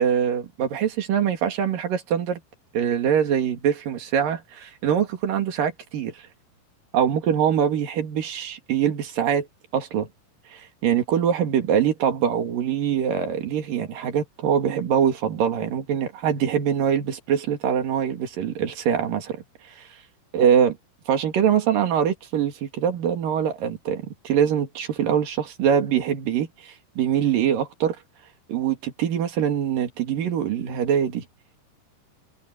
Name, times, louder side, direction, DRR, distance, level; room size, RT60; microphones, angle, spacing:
voice 1, 0.0-2.4 2.7-6.2 6.9-9.5 9.7-10.1 10.5-19.4 19.8-19.9 20.3-20.7 21.1-28.0 28.5-31.2, right 8 dB, 55° right, 3.6 m, -23 dB
omnidirectional pair, 5.0 m